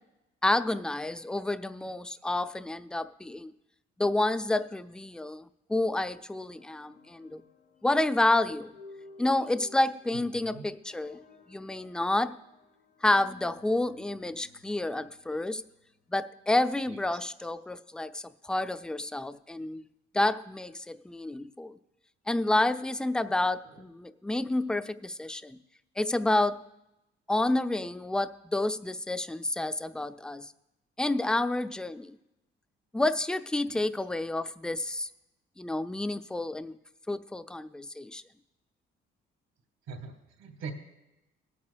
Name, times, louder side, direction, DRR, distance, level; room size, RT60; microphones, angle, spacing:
voice 1, 0.4-3.5 4.0-7.4 7.8-8.7 9.2-11.2 11.5-12.4 13.0-15.6 16.1-19.8 20.1-21.7 22.3-25.6 26.0-26.6 27.3-30.5 31.0-32.2 32.9-35.1 35.6-36.8 37.1-38.2, left 2 dB, 5° left, 11 dB, 0.3 m, -29 dB
sound 1, 6.5-16.6, left 3 dB, 80° left, 1.3 m, -56 dB
voice 2, 10.1-10.7 16.9-17.0 23.6-23.8 33.6-33.8 39.9-40.7, right 5 dB, 75° right, 5 dB, 1.5 m, -43 dB
20.5 x 8.5 x 2.3 m, 0.94 s
cardioid pair, 115°, 21 cm